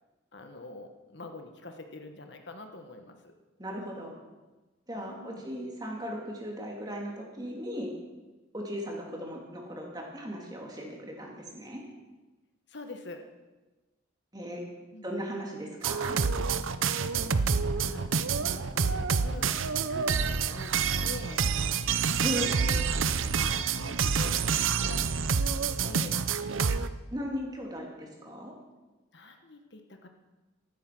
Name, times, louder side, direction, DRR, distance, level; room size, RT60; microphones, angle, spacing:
voice 1, 0.3-3.3 5.0-5.5 12.7-13.2 14.9-15.1 17.1-20.7 21.0-21.4 22.6-24.5 24.8-26.2 27.9-28.0 29.1-30.1, left 2 dB, 60° left, 5 dB, 1.4 m, -45 dB
voice 2, 3.6-4.1 4.9-7.9 8.5-11.8 14.3-14.6 15.0-16.2 22.2-22.6 27.1-28.5, equal, 20° right, 0 dB, 2.8 m, -37 dB
sound 1, 15.8-26.9, right 5 dB, 80° right, 0.7 m, -28 dB
14.0 x 12.5 x 6.1 m, 1.2 s
head